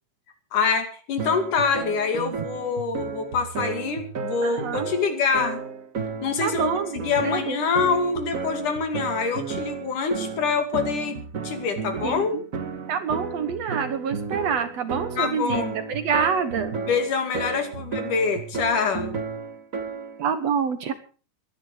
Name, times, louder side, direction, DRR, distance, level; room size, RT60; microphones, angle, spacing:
voice 1, 0.5-5.6 6.2-12.4 15.2-15.8 16.9-19.2, left 5 dB, 75° left, 6 dB, 4.0 m, -25 dB
sound 1, 1.2-20.2, right 5 dB, 45° right, 1.1 m, -33 dB
voice 2, 4.4-4.9 6.4-7.6 12.0-12.4 12.9-15.6 15.9-16.7 20.2-20.9, right 6 dB, 60° right, 11 dB, 2.1 m, -27 dB
21.5 x 10.5 x 5.0 m, 0.37 s
omnidirectional pair, 3.7 m